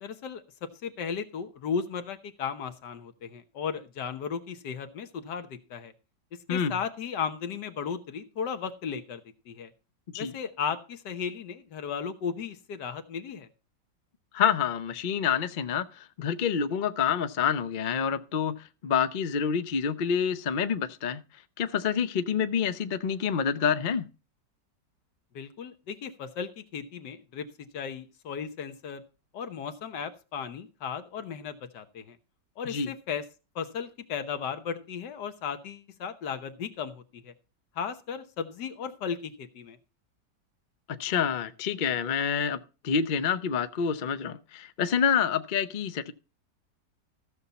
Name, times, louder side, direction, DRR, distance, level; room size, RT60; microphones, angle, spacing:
voice 1, 0.0-5.9 6.3-9.7 10.2-13.5 25.3-29.0 29.3-32.2 32.6-33.2 33.5-37.3 37.7-39.8, left 6 dB, 75° left, 1.6 m, -35 dB
voice 2, 14.3-18.6 18.8-21.2 21.6-24.1 32.6-32.9 40.9-46.1, left 7 dB, 60° left, 0.5 m, -27 dB
14.5 x 6.9 x 4.1 m
omnidirectional pair, 1.9 m